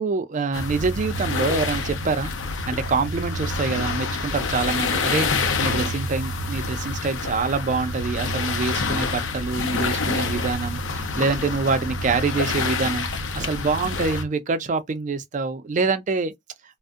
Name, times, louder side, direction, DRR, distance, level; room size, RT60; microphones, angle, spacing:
voice 1, 0.0-2.3 2.7-16.3, right 4 dB, 40° right, 0.4 m, -26 dB
sound 1, 0.5-14.2, left 3 dB, 90° left, 0.5 m, -27 dB
2.5 x 2.1 x 2.4 m
head